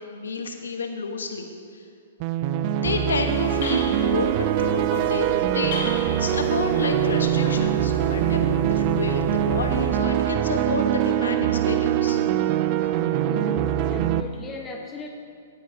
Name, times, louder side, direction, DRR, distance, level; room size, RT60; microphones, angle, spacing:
voice 1, 0.1-1.5 2.8-5.8 6.2-12.2, left 3 dB, 85° left, 4 dB, 1.2 m, -30 dB
sound 1, 2.2-14.2, right 12 dB, 40° right, 0.4 m, -23 dB
sound 2, 3.0-10.0, left 2 dB, 60° left, 2.8 m, -35 dB
voice 2, 13.3-15.1, left 4 dB, 20° left, 2 dB, 1.3 m, -38 dB
16.5 x 9.3 x 2.8 m, 2.3 s
hypercardioid pair, 130°, 0 cm